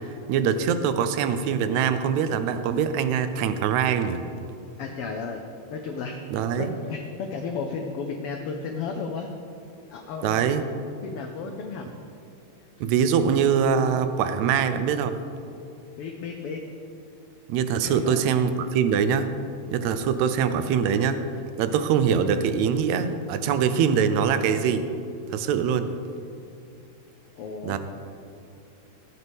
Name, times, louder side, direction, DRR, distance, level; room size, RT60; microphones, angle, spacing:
voice 1, 0.3-4.2 6.3-6.7 10.2-10.6 12.8-15.2 17.5-19.3 19.7-21.2 21.6-24.9 25.3-25.9 27.6-27.8, right 7 dB, 75° right, 10 dB, 1.9 m, -23 dB
voice 2, 4.8-5.4 5.7-9.3 9.9-10.6 11.0-11.9 12.8-12.9 16.0-16.6 17.8-18.2 27.4-27.8, left 5 dB, 80° left, 3 dB, 1.3 m, -34 dB
16.0 x 8.3 x 3.5 m, 2.6 s
omnidirectional pair, 3.4 m